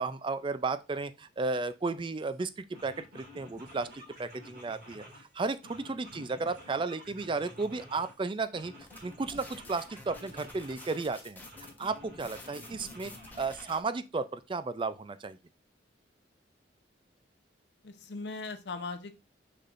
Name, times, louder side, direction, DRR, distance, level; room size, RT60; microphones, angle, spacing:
voice 1, 0.0-3.9 4.2-5.1 5.3-8.7 9.0-11.4 11.8-15.4, right 3 dB, 25° right, 0.4 m, -34 dB
sound 1, 2.2-2.3 2.7-5.3 5.6-8.2 8.5-11.0 11.4-13.8, equal, 60° right, 3.9 m, -51 dB
sound 2, 8.8-13.8, left 2 dB, 10° left, 1.1 m, -50 dB
voice 2, 17.8-19.2, left 3 dB, 70° left, 0.8 m, -39 dB
6.5 x 5.8 x 2.6 m
head